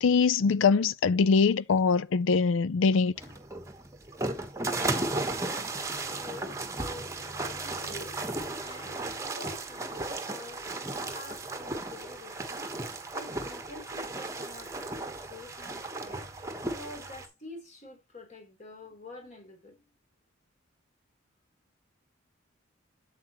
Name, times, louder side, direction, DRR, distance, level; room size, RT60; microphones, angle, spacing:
voice 1, 0.0-3.1, left 5 dB, 75° left, 0.4 m, -23 dB
sound 1, 3.2-17.3, right 2 dB, 15° right, 1.2 m, -35 dB
voice 2, 5.1-8.2 8.6-19.8, left 2 dB, 35° left, 3.4 m, -48 dB
8.5 x 7.5 x 3.0 m
head